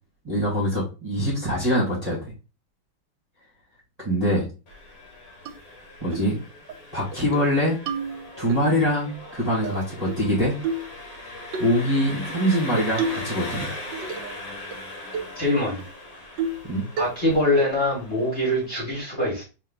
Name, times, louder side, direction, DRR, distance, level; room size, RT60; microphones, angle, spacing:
voice 1, 0.2-2.3 4.0-4.4 6.0-6.4 6.9-7.8 8.4-10.5 11.6-13.7 16.6-16.9, equal, 20° right, -7 dB, 1.6 m, -23 dB
Engine, 4.7-18.7, left 1 dB, 55° left, 1.3 m, -39 dB
sound 1, 5.5-5.6 6.1-6.3 6.7-6.8 7.1-7.5 7.9-8.6 9.6-10.3 10.6-10.9 11.5-11.7 12.8-13.4 13.7-14.4 14.7-14.8 15.1-15.4 15.8-15.9 16.4-16.7 17.0-17.4, right 4 dB, 75° right, 1.3 m, -30 dB
voice 2, 15.4-15.8 17.0-19.4, left 1 dB, 35° left, -3 dB, 1.9 m, -23 dB
3.7 x 3.1 x 3.5 m, 0.30 s
omnidirectional pair, 2.1 m